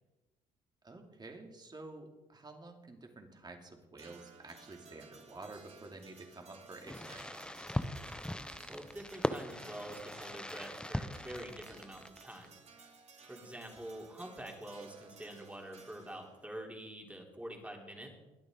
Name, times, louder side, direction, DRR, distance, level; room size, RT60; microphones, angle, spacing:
voice 1, 0.8-7.2, right 2 dB, 30° right, 3 dB, 2.7 m, -50 dB
sound 1, 4.0-16.4, right 5 dB, 45° right, 3.1 m, -58 dB
Fireworks, 6.9-12.4, left 1 dB, 5° left, 0.7 m, -40 dB
voice 2, 8.7-12.6 13.3-18.1, right 1 dB, 10° right, 0 dB, 3.5 m, -46 dB
21.5 x 8.8 x 3.9 m, 1.1 s
supercardioid pair, 70°, 15 cm